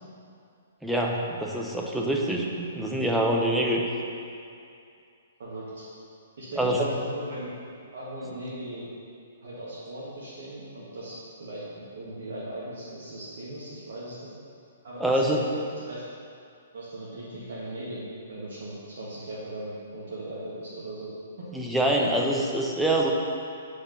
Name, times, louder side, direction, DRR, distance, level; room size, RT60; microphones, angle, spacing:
voice 1, 0.8-3.8 6.6-6.8 15.0-15.4 21.5-23.1, right 1 dB, ahead, -2 dB, 0.8 m, -25 dB
voice 2, 5.4-5.8 6.4-7.5 7.9-8.9 9.4-11.6 11.9-14.2 14.8-16.0 16.7-21.1, right 1 dB, 55° right, -8 dB, 1.6 m, -38 dB
6.5 x 5.2 x 6.4 m, 2.5 s
figure-of-eight pair, 120°, 0 cm